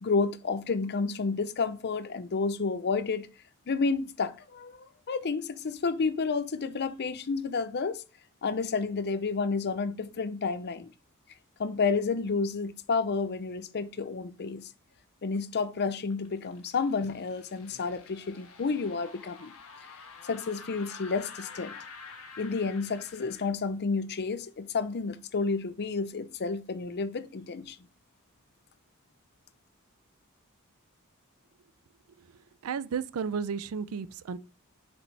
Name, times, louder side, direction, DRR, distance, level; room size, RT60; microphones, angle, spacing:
voice 1, 0.0-3.3 3.7-8.0 8.4-10.9 11.6-14.7 15.2-19.5 20.2-21.7 22.4-27.8, left 4 dB, 50° left, 0.6 m, -30 dB
sound 1, 15.8-23.5, left 5 dB, 85° left, 1.3 m, -48 dB
voice 2, 32.6-34.4, right 6 dB, 80° right, 0.4 m, -33 dB
6.1 x 5.2 x 3.3 m
head